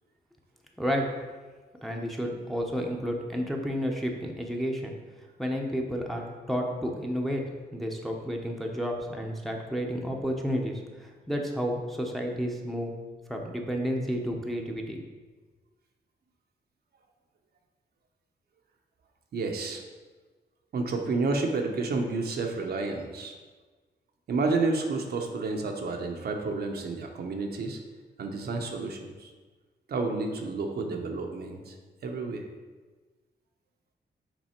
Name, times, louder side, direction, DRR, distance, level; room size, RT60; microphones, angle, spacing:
voice 1, 1.8-4.9 5.4-7.4 7.7-13.0 13.3-15.0, equal, ahead, 0 dB, 0.8 m, -31 dB
voice 2, 19.3-19.8 20.7-23.3 24.3-27.8 28.2-29.3 29.9-31.7 32.0-32.4, right 3 dB, 65° right, 2 dB, 0.8 m, -30 dB
6.1 x 4.1 x 4.4 m, 1.3 s
cardioid pair, 95°, 18 cm